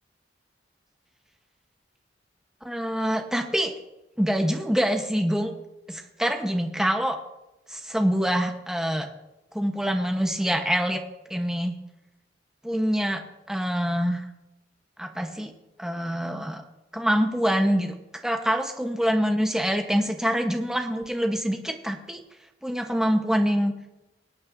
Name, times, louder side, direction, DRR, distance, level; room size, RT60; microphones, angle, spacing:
voice 1, 2.6-3.7 4.2-5.5 5.9-7.2 7.7-9.1 9.5-11.0 11.3-11.8 12.6-13.2 13.5-14.2 15.0-15.5 15.8-16.6 16.9-17.9 18.2-22.2 22.6-23.7, equal, 5° right, 3 dB, 1.0 m, -25 dB
23.5 x 8.8 x 2.6 m, 0.96 s
head